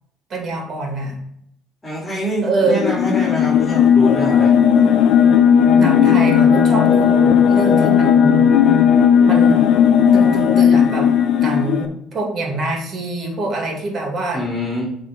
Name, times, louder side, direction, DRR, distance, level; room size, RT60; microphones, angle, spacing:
voice 1, 0.3-1.2 2.4-2.8 5.7-8.4 9.2-9.7 10.1-11.1 11.4-14.4, right 2 dB, 45° right, 2 dB, 2.4 m, -25 dB
voice 2, 1.8-4.5 14.3-14.9, equal, 15° left, -6 dB, 3.0 m, -24 dB
sound 1, 2.7-11.9, left 8 dB, 70° left, 0.9 m, -14 dB
7.5 x 3.7 x 5.2 m, 0.74 s
cardioid pair, 95°, 0 cm